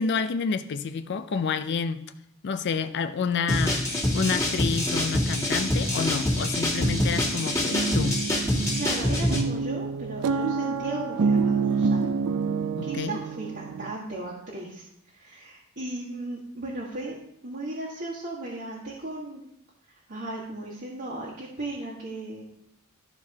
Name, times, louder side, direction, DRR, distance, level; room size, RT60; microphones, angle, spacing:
voice 1, 0.0-2.0 2.4-3.8 4.1-8.2 12.8-13.2, left 5 dB, 50° left, 0.4 m, -29 dB
sound 1, 3.5-9.4, left 1 dB, 15° left, 1.8 m, -25 dB
sound 2, 6.8-13.9, right 5 dB, 75° right, 0.3 m, -28 dB
voice 2, 8.7-12.1 12.8-17.2 17.4-19.4 20.1-22.4, right 2 dB, 50° right, 1.6 m, -36 dB
13.5 x 4.7 x 2.8 m
head